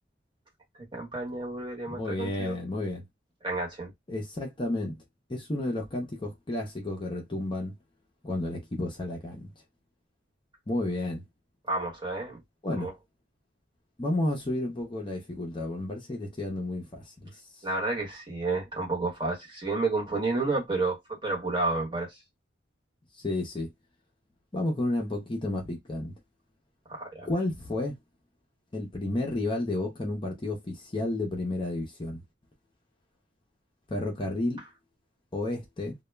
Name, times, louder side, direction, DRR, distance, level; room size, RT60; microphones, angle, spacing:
voice 1, 0.9-2.6 3.4-3.9 11.7-12.4 12.8-12.9 17.6-22.2 26.9-27.3, right 3 dB, 25° right, 1.0 m, -30 dB
voice 2, 1.9-3.0 4.1-5.0 5.3-7.7 8.2-9.5 10.7-11.2 12.6-12.9 14.0-17.4 23.2-23.7 24.5-26.1 27.2-28.0 28.7-32.2 33.9-34.6 35.3-35.9, left 1 dB, 25° left, 0.5 m, -31 dB
2.2 x 2.0 x 3.2 m
head